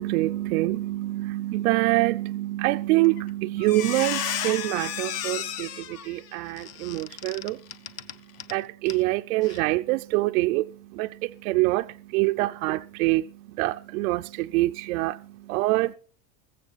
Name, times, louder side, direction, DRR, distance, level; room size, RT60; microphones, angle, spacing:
voice 1, 0.0-7.6 8.5-13.3 13.6-15.9, right 19 dB, 60° right, 0.6 m, -25 dB
Squeak, 3.0-3.3 3.6-8.6 8.9-9.0 9.4-9.6, left 10 dB, 30° left, 0.8 m, -33 dB
22.0 x 7.5 x 4.1 m
supercardioid pair, 160°, 48 cm